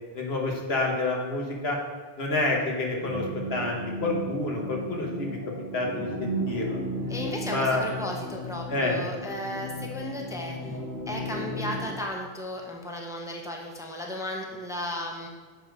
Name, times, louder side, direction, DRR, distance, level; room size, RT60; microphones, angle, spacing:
voice 1, 0.1-1.8 2.2-5.4 5.7-6.8 7.4-7.9 8.7-9.0, left 2 dB, 75° left, 0 dB, 1.5 m, -28 dB
sound 1, 3.0-11.9, right 1 dB, 15° left, 1.3 m, -35 dB
voice 2, 7.1-10.8 11.1-15.3, left 1 dB, 5° right, 0 dB, 0.8 m, -35 dB
7.0 x 4.7 x 6.2 m, 1.4 s
omnidirectional pair, 1.1 m